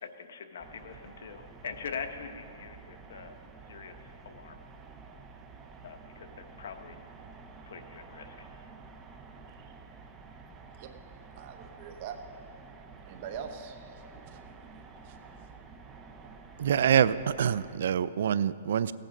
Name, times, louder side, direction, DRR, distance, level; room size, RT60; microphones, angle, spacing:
voice 1, 0.0-3.4 3.7-3.9 4.2-4.6 5.8-7.0 7.7-8.6, left 6 dB, 70° left, 7 dB, 1.0 m, -43 dB
sound 1, 0.6-17.8, right 4 dB, 15° right, 0.7 m, -50 dB
voice 2, 11.3-12.2 12.4-14.5 15.0-15.5, right 7 dB, 40° right, 6 dB, 1.1 m, -45 dB
voice 3, 16.6-18.9, right 9 dB, 65° right, 17 dB, 0.3 m, -25 dB
16.5 x 8.9 x 5.3 m, 2.7 s
hypercardioid pair, 155°, 0 cm